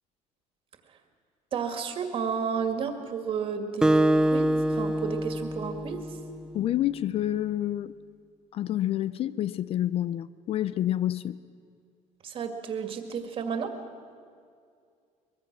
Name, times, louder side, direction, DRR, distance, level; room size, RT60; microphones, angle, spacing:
voice 1, 1.5-6.2 12.2-13.7, right 6 dB, 40° right, 2.1 m, -32 dB
Acoustic guitar, 3.8-6.6, right 1 dB, 5° right, 0.5 m, -25 dB
voice 2, 6.5-7.9 8.5-11.4, left 12 dB, 45° left, 0.5 m, -28 dB
23.0 x 21.5 x 6.1 m
cardioid pair, 150°, 14 cm